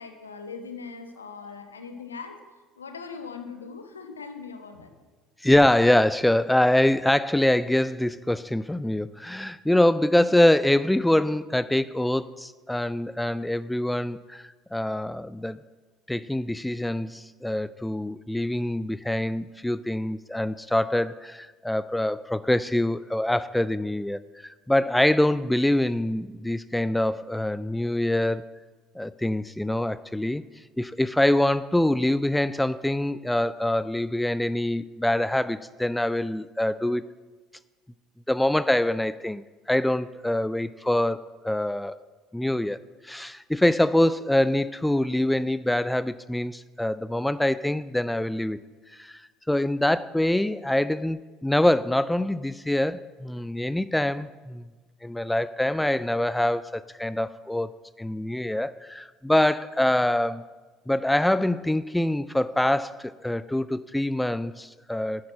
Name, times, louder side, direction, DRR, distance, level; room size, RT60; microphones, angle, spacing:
voice 1, 0.0-2.4 2.8-4.9, left 5 dB, 80° left, 7 dB, 1.2 m, -40 dB
voice 2, 5.4-14.4 14.7-15.6 16.1-28.4 29.0-30.4 30.8-37.0 38.3-39.4 39.7-42.0 42.3-42.8 43.0-48.6 48.9-49.2 49.5-54.6 55.0-57.7 58.0-60.4 60.9-65.3, left 1 dB, 5° left, 16 dB, 0.4 m, -24 dB
10.5 x 9.2 x 7.3 m, 1.3 s
figure-of-eight pair, 60°, 0 cm